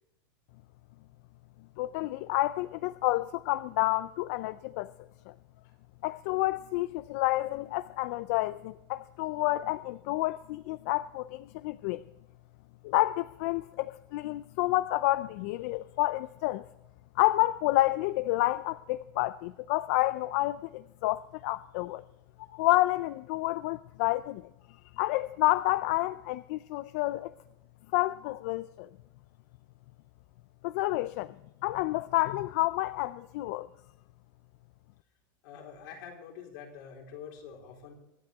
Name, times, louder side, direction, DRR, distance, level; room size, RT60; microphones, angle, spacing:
voice 1, 1.8-4.9 5.3-5.4 6.0-12.0 12.8-16.7 17.2-22.0 22.5-24.5 24.9-27.3 27.9-28.9 30.6-31.3 31.6-33.7, left 18 dB, 45° left, 15 dB, 0.3 m, -29 dB
voice 2, 35.4-37.9, left 7 dB, 65° left, -1 dB, 3.9 m, -46 dB
24.0 x 8.8 x 3.5 m, 0.93 s
supercardioid pair, 170°, 11 cm